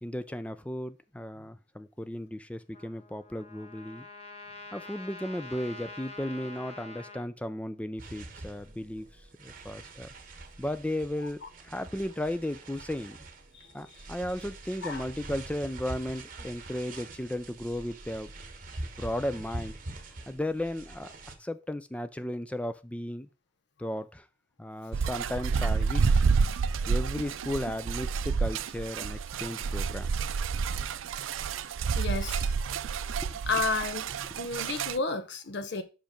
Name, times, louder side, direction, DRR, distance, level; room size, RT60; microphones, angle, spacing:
voice 1, 0.0-4.1 4.7-9.1 9.4-10.1 10.6-13.2 13.7-18.3 19.0-19.8 20.3-21.1 21.4-23.3 23.8-24.3 24.6-26.3 26.9-30.1 33.2-33.4 34.3-34.4, left 1 dB, 5° left, 0.4 m, -35 dB
Trumpet, 2.7-7.3, left 2 dB, 35° left, 0.8 m, -46 dB
sound 1, 8.0-21.3, right 2 dB, 45° right, 1.1 m, -44 dB
sound 2, 24.9-35.0, right 5 dB, 85° right, 0.4 m, -29 dB
voice 2, 32.0-32.5 33.5-34.1 34.4-35.8, left 3 dB, 60° left, 0.9 m, -31 dB
5.9 x 5.3 x 5.1 m
head